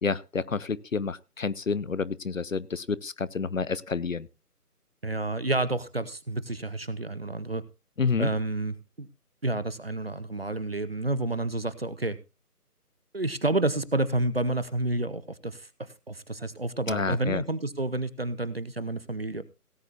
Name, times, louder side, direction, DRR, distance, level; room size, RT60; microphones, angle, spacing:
voice 1, 0.0-4.3 8.0-8.3 16.9-17.4, left 5 dB, 55° left, 19 dB, 0.7 m, -29 dB
voice 2, 5.0-7.6 8.2-9.1 9.4-12.2 13.1-19.4, right 2 dB, 40° right, 16 dB, 0.7 m, -30 dB
18.0 x 9.3 x 2.9 m, 0.29 s
figure-of-eight pair, 160°, 47 cm